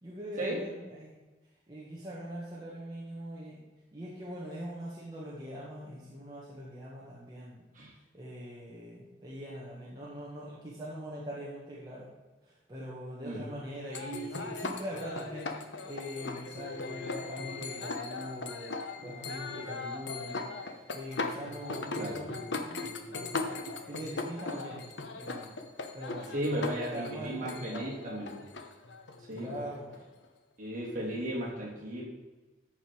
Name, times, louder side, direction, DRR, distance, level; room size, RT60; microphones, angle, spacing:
voice 1, 0.0-1.2 1.7-3.6 3.9-7.6 8.1-12.1 12.4-24.9 25.1-25.6 25.9-27.9 29.3-30.1, equal, 20° right, -7 dB, 1.8 m, -42 dB
voice 2, 13.2-13.6 22.0-22.2 26.3-28.3 29.3-29.6 30.6-32.0, right 1 dB, 45° right, -5 dB, 3.2 m, -35 dB
sound 1, 13.9-30.2, left 3 dB, 75° left, 1.0 m, -39 dB
14.0 x 5.5 x 4.8 m, 1.2 s
head